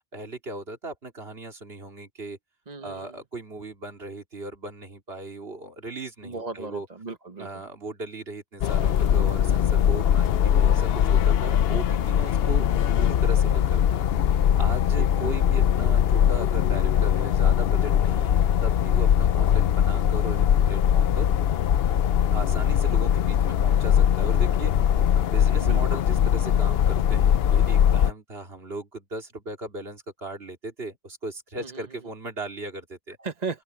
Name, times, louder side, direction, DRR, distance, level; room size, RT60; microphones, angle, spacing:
voice 1, 0.1-2.4 2.8-6.9 7.4-12.7 13.0-14.0 14.6-21.3 22.3-33.2, right 2 dB, 70° right, 3.3 m, -37 dB
voice 2, 2.7-3.2 6.2-7.5 15.0-15.1 25.6-25.8 31.6-31.8 33.2-33.6, right 4 dB, 40° right, 1.3 m, -35 dB
sound 1, 8.6-28.1, left 9 dB, 70° left, 0.8 m, -21 dB
open air
omnidirectional pair, 1.1 m